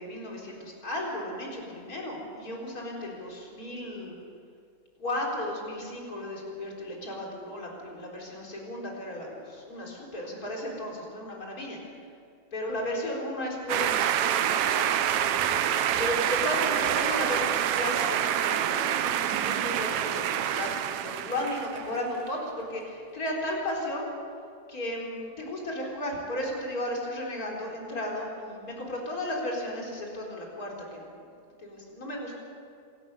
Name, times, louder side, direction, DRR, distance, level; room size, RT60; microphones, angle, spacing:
voice 1, 0.0-4.2 5.0-11.9 12.5-15.6 16.0-24.1 24.7-31.2 31.6-32.3, left 1 dB, 25° left, -1 dB, 4.2 m, -34 dB
sound 1, 13.7-22.0, right 10 dB, 85° right, 1.6 m, -27 dB
26.5 x 13.0 x 8.1 m, 2.3 s
omnidirectional pair, 4.3 m